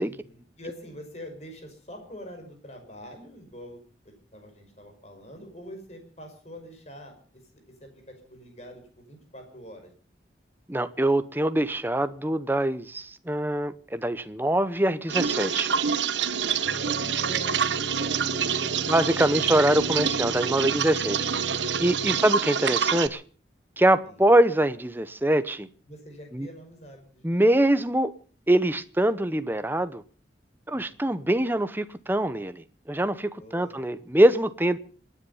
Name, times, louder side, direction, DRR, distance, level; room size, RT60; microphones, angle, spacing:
voice 1, 0.0-3.8 4.0-9.9 16.5-19.4 24.1-24.2 25.9-27.4 30.7-31.1 33.4-33.8, equal, 35° left, 5.6 m, -45 dB
voice 2, 10.7-15.7 18.9-21.2 21.8-23.2 23.8-25.7 26.3-26.5 27.2-28.1 28.5-30.0 30.7-34.8, right 1 dB, 10° right, 0.8 m, -23 dB
sound 1, 15.1-23.1, right 7 dB, 85° right, 1.1 m, -27 dB
sound 2, 16.6-22.2, right 1 dB, 30° right, 2.3 m, -39 dB
26.5 x 10.0 x 5.5 m
head